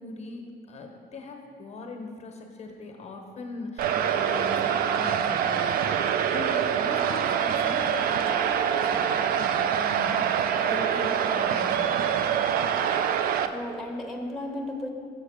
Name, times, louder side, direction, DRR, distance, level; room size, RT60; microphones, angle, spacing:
voice 1, 0.0-5.9 6.3-12.2, left 3 dB, 40° left, 2 dB, 1.0 m, -40 dB
sound 1, 3.8-13.5, right 8 dB, 60° right, 0.4 m, -25 dB
voice 2, 13.0-14.9, left 1 dB, ahead, -1 dB, 1.1 m, -35 dB
7.2 x 6.5 x 4.9 m, 2.3 s
cardioid pair, 110°, 17 cm